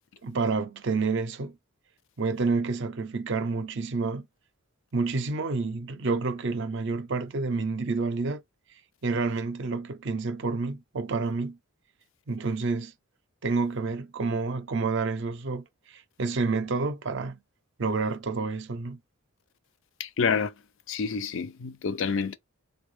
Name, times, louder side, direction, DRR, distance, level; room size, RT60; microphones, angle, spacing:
voice 1, 0.2-1.6 2.2-4.3 4.9-8.4 9.0-11.6 12.3-12.9 13.4-17.4 17.8-19.0, right 4 dB, 55° right, 0.5 m, -29 dB
voice 2, 20.0-20.5 20.9-22.4, left 5 dB, 60° left, 0.4 m, -28 dB
3.9 x 2.2 x 3.2 m
head